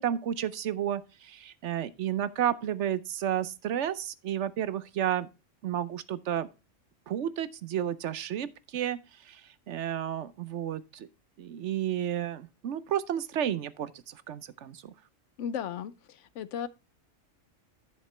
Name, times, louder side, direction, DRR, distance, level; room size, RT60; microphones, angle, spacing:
voice 1, 0.0-5.3 5.6-6.5 7.1-9.0 9.2-9.4 9.7-11.1 11.4-14.9, right 10 dB, 70° right, 0.9 m, -32 dB
voice 2, 15.4-16.7, left 8 dB, 70° left, 0.9 m, -35 dB
11.0 x 6.6 x 3.1 m
omnidirectional pair, 1.3 m